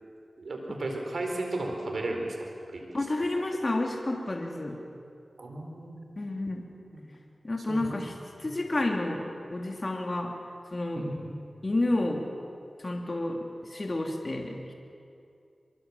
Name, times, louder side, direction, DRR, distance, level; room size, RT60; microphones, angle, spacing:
voice 1, 0.4-2.8 3.3-3.5 5.4-6.0 6.9-7.0 7.7-8.0 10.9-11.3, right 2 dB, 80° right, 2 dB, 4.5 m, -34 dB
voice 2, 2.9-4.8 6.2-6.6 7.4-8.1 8.4-10.3 10.7-11.1 11.6-12.3 12.8-14.6, left 2 dB, 45° left, 2 dB, 2.9 m, -30 dB
24.5 x 22.5 x 7.4 m, 2.4 s
cardioid pair, 50°, 0 cm